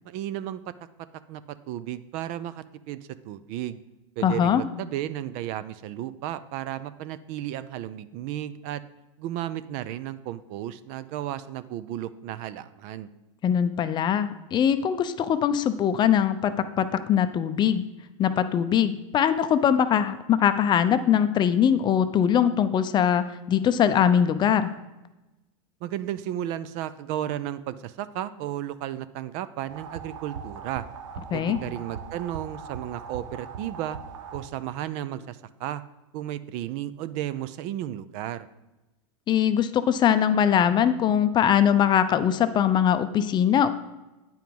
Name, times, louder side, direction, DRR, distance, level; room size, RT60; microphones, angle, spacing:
voice 1, 0.1-0.6 1.3-1.4 1.7-3.0 3.2-3.8 4.2-8.8 9.2-13.1 25.8-30.8 31.3-34.0 34.3-35.8 36.1-38.5, right 12 dB, 50° right, 15 dB, 0.5 m, -33 dB
voice 2, 4.2-4.6 13.4-17.8 18.2-24.7 31.3-31.6 39.3-43.7, left 9 dB, 30° left, 11 dB, 0.5 m, -22 dB
sound 1, 29.7-34.8, right 6 dB, 80° right, 0.8 m, -40 dB
9.2 x 4.8 x 5.3 m, 1.0 s
hypercardioid pair, 120°, 16 cm